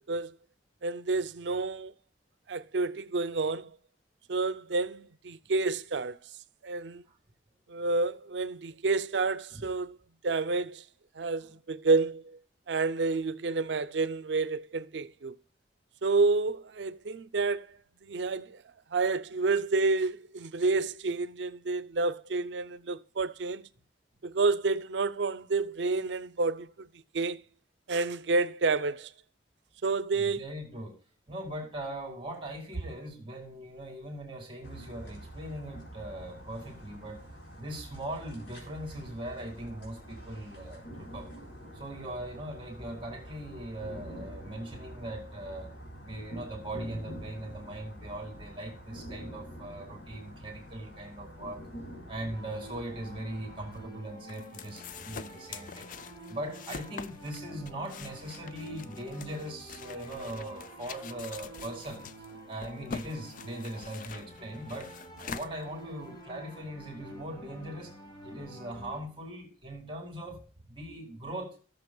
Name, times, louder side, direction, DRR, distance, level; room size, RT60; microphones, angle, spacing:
voice 1, 0.8-1.9 2.5-3.7 4.3-6.2 6.6-7.0 7.7-10.0 10.2-10.8 11.1-12.4 12.7-15.4 16.0-18.6 18.9-23.7 24.2-26.9 27.1-27.4 27.9-29.1 29.8-30.5, right 3 dB, 80° right, 0.6 m, -29 dB
voice 2, 30.2-31.0 31.3-37.2 37.6-41.3 41.7-45.7 46.0-51.6 52.1-55.9 56.3-62.0 62.5-64.9 65.2-67.9 68.2-71.6, right 1 dB, 30° right, 2.3 m, -40 dB
sound 1, 34.6-53.8, equal, 85° left, 4.0 m, -46 dB
sound 2, 52.3-69.0, equal, 25° left, 3.0 m, -48 dB
sound 3, 53.7-66.2, left 6 dB, 50° left, 0.4 m, -45 dB
15.5 x 6.8 x 2.3 m
head